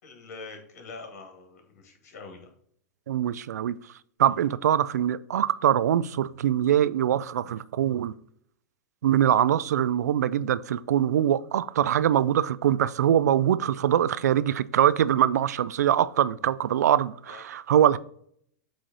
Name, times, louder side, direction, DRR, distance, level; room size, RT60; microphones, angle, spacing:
voice 1, 0.0-2.5 4.2-4.4 16.4-16.5 17.2-17.4, left 3 dB, 65° left, 2.1 m, -44 dB
voice 2, 3.1-3.7 4.2-8.1 9.0-18.0, right 10 dB, 80° right, 0.4 m, -23 dB
7.8 x 3.2 x 3.9 m
hypercardioid pair, 120°, 9 cm